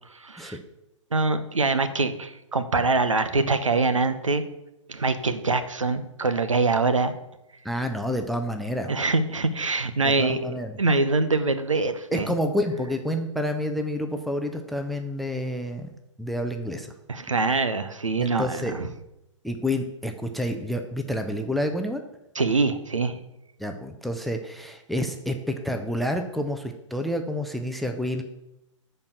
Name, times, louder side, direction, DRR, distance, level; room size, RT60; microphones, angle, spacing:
voice 1, 0.2-0.6 1.1-4.4 4.9-7.1 8.9-10.4 10.8-12.3 17.1-18.9 22.3-23.2, right 3 dB, 75° right, 11 dB, 0.9 m, -24 dB
voice 2, 7.6-8.9 10.0-10.8 12.1-15.9 16.2-16.9 18.2-18.7 19.4-22.0 23.6-28.2, left 1 dB, ahead, 6 dB, 0.5 m, -29 dB
10.5 x 4.5 x 6.6 m, 0.89 s
figure-of-eight pair, 120°, 16 cm